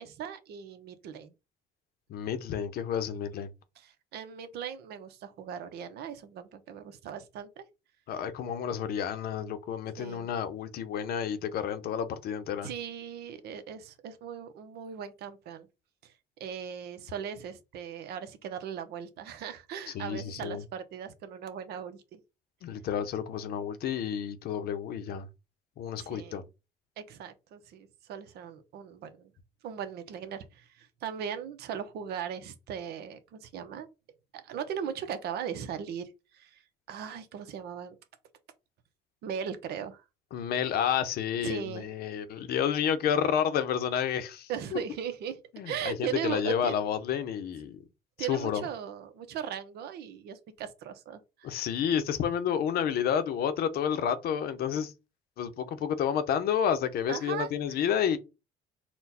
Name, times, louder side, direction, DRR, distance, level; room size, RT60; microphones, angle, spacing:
voice 1, 0.0-1.3 3.8-7.6 10.0-10.3 12.6-15.7 16.0-16.1 16.4-22.2 26.0-26.4 27.0-29.3 29.6-33.9 34.3-36.6 36.9-38.0 39.2-40.0 41.4-41.9 44.5-45.4 45.6-46.7 48.2-51.6 57.1-57.5, right 8 dB, 75° right, 0.9 m, -38 dB
voice 2, 2.1-3.5 8.1-12.7 19.9-20.6 22.6-25.3 25.8-26.4 40.3-44.8 45.5-47.8 48.3-48.7 51.4-54.9 55.4-58.2, left 8 dB, 65° left, 0.8 m, -30 dB
4.3 x 2.3 x 4.1 m
cardioid pair, 110°, 17 cm